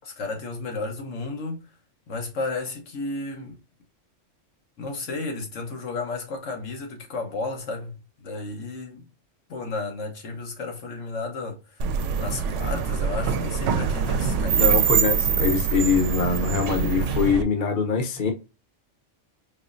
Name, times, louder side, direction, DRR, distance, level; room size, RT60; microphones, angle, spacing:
voice 1, 0.0-1.7 2.1-3.6 4.8-9.1 9.5-11.9 12.2-14.8, left 3 dB, 80° left, 1.3 m, -33 dB
sound 1, 11.8-17.4, right 7 dB, 80° right, 0.9 m, -24 dB
voice 2, 14.5-18.3, left 6 dB, 45° left, 0.9 m, -23 dB
4.3 x 3.0 x 2.5 m
omnidirectional pair, 1.3 m